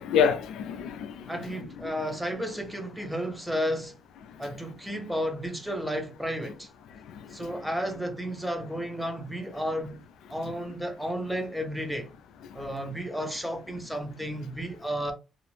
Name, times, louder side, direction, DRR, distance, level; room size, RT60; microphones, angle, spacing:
voice 1, 0.0-1.7 4.3-4.6 6.9-7.6 10.4-10.5 12.4-12.9, left 7 dB, 80° left, 0.3 m, -30 dB
voice 2, 1.3-4.0 4.4-6.7 7.3-10.0 10.3-12.1 12.5-15.1, equal, 5° right, 0.7 m, -32 dB
2.5 x 2.0 x 3.0 m
cardioid pair, 90°, 0 cm